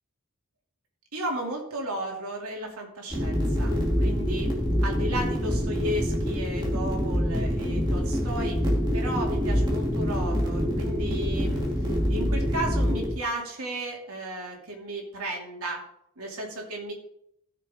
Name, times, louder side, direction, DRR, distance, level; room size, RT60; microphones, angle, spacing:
voice 1, 1.1-4.5 4.8-8.6 8.9-15.8 16.2-16.9, right 1 dB, 80° right, 0 dB, 2.7 m, -34 dB
sound 1, 3.1-13.1, equal, 20° right, 2.6 m, -26 dB
15.0 x 6.7 x 3.7 m, 0.75 s
head